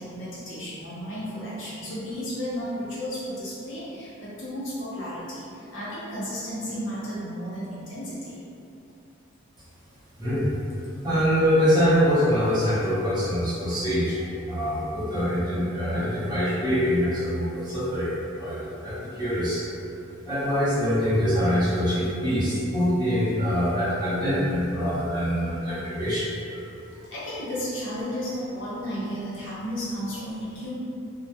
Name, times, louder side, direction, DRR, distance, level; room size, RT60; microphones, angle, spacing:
voice 1, 0.0-8.4 15.9-16.3 26.9-30.7, equal, 70° left, -9 dB, 0.8 m, -33 dB
voice 2, 10.2-10.5 11.0-14.2 14.5-19.6 20.2-26.3, equal, 20° right, -12 dB, 0.6 m, -24 dB
2.2 x 2.1 x 2.7 m, 2.6 s
head